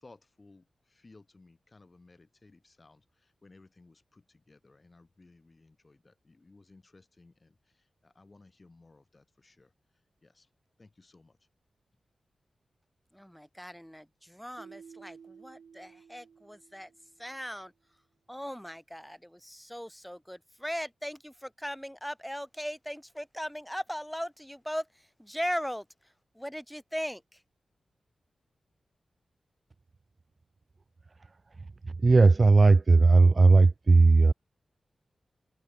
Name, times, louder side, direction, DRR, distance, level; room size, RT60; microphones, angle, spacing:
voice 1, 0.0-0.6 0.9-3.0 3.4-7.5 8.0-9.7 10.2-10.5 10.8-11.3, left 3 dB, 40° left, 1.6 m, -58 dB
voice 2, 13.1-16.9 17.2-17.7 18.3-27.4, equal, 5° left, 1.4 m, -38 dB
Keyboard (musical), 14.6-17.4, right 6 dB, 80° right, 2.8 m, -53 dB
voice 3, 32.0-34.3, right 3 dB, 50° right, 0.3 m, -18 dB
cardioid pair, 45°, 0 cm